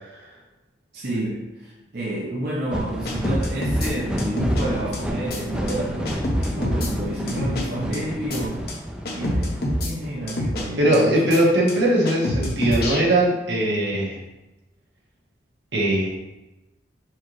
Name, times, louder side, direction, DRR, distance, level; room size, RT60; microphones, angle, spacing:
voice 1, 0.9-8.7 9.1-11.3, right 1 dB, 55° right, -5 dB, 0.7 m, -30 dB
sound 1, 2.7-10.4, equal, 5° right, 0.4 m, -30 dB
sound 2, 3.0-3.9 4.2-4.6 4.9-5.0 5.3-5.4 5.7-5.8 6.0-6.9 7.3-7.6 7.9-8.0 8.3-8.4 8.7-8.8 9.0-9.9 10.3-10.6 10.9-11.0 11.3-11.4 11.7-11.8 12.0-13.0, left 1 dB, 55° left, 0.8 m, -25 dB
voice 2, 10.8-14.2 15.7-16.1, right 1 dB, 85° right, -4 dB, 1.3 m, -20 dB
4.5 x 3.1 x 3.7 m, 1.0 s
head